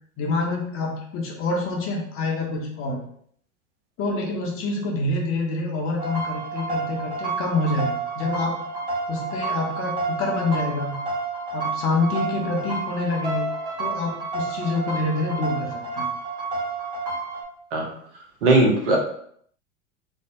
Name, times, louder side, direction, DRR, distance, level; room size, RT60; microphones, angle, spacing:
voice 1, 0.2-3.0 4.0-8.6 9.1-11.0 11.5-13.5 13.8-16.1, left 2 dB, 35° left, 0 dB, 0.6 m, -26 dB
sound 1, 6.0-17.4, right 3 dB, 10° right, 1.2 m, -30 dB
voice 2, 18.4-19.0, right 2 dB, 65° right, 0 dB, 0.8 m, -18 dB
2.6 x 2.0 x 2.4 m, 0.63 s
figure-of-eight pair, 80°, 39 cm